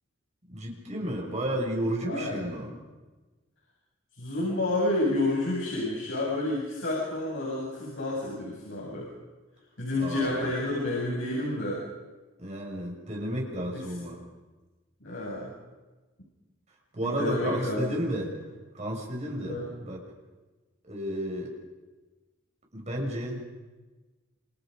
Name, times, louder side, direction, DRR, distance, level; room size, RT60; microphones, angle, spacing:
voice 1, 0.5-2.7 10.0-10.5 12.4-14.2 16.9-18.3 18.7-20.0 20.9-21.5 22.7-23.4, right 1 dB, 35° right, 0 dB, 6.7 m, -32 dB
voice 2, 2.1-2.5 4.1-9.1 9.8-11.8 13.7-13.9 15.0-15.5 17.0-18.1 19.4-19.6, left 2 dB, 70° left, -5 dB, 7.9 m, -30 dB
29.0 x 28.0 x 5.4 m, 1.2 s
head